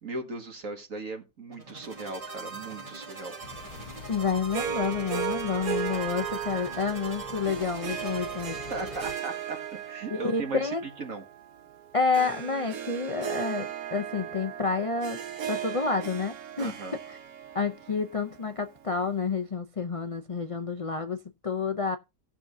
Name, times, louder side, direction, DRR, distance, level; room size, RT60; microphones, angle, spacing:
voice 1, 0.0-3.3 8.7-9.6 9.9-10.6 11.0-11.2 16.6-16.9, right 3 dB, 60° right, 2.2 m, -37 dB
sound 1, 1.5-10.0, right 3 dB, 25° right, 1.5 m, -43 dB
sound 2, 3.4-9.2, left 8 dB, 85° left, 1.3 m, -47 dB
voice 2, 4.1-8.6 10.1-10.8 11.9-15.2 15.5-16.8 17.1-17.2 17.5-22.0, left 5 dB, 45° left, 0.4 m, -29 dB
Harp, 4.5-18.9, right 8 dB, 75° right, 1.5 m, -36 dB
18.0 x 6.1 x 2.7 m
omnidirectional pair, 1.6 m